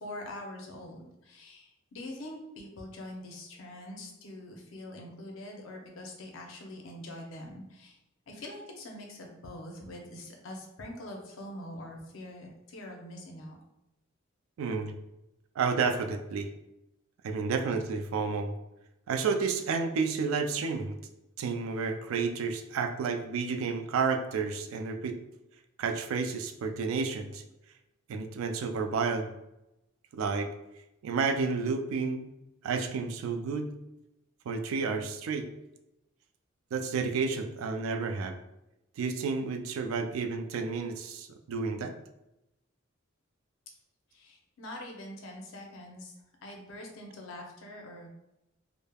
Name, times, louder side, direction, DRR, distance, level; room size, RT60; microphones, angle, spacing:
voice 1, 0.0-8.0 8.3-13.6 44.1-46.1 46.4-48.1, left 1 dB, 75° left, 1 dB, 0.6 m, -44 dB
voice 2, 14.6-15.0 15.6-16.5 17.2-18.5 19.1-21.0 21.4-25.2 25.8-27.4 28.1-29.3 30.1-30.5 31.0-32.3 32.6-33.7 34.5-35.5 36.7-38.4 39.0-41.9, right 5 dB, 75° right, 6 dB, 0.3 m, -31 dB
3.2 x 2.0 x 2.2 m, 0.91 s
head